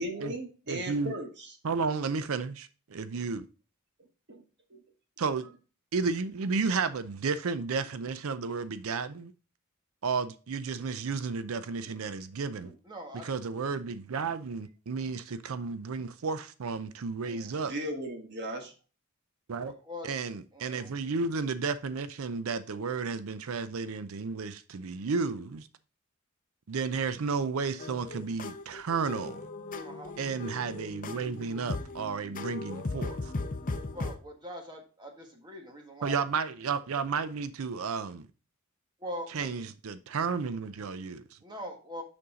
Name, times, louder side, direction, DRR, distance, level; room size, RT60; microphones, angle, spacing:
voice 1, 0.0-1.5 3.1-3.2 4.3-4.4 4.7-4.8 11.9-12.0 12.6-12.7 17.6-18.7, right 1 dB, 55° right, 1.4 m, -37 dB
voice 2, 0.7-1.1 1.6-3.5 5.2-5.5 5.9-9.3 10.0-12.7 13.2-17.7 19.5-19.7 20.0-25.7 26.7-29.4 30.2-33.3 36.0-38.3 39.3-41.4, right 5 dB, 75° right, 0.5 m, -32 dB
voice 3, 12.8-13.2 17.3-17.7 19.6-20.1 20.5-20.9 29.8-30.1 33.9-36.2 39.0-39.5 41.4-42.0, equal, 20° right, 1.5 m, -42 dB
sound 1, 27.8-34.1, left 2 dB, 40° left, 0.7 m, -37 dB
6.8 x 5.3 x 3.7 m
head